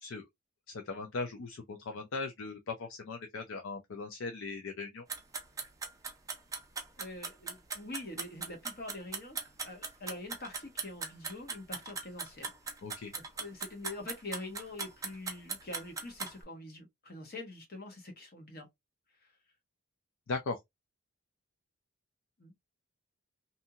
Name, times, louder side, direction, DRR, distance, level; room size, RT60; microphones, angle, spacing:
voice 1, 0.7-5.1 12.8-13.1 20.3-20.6, left 3 dB, 60° left, 0.4 m, -39 dB
sound 1, 5.1-16.3, right 5 dB, 15° right, 0.4 m, -39 dB
voice 2, 7.0-9.4 9.6-12.5 13.1-18.7 19.2-19.3 22.4-22.5, left 2 dB, 45° left, 1.0 m, -45 dB
2.7 x 2.6 x 2.4 m
head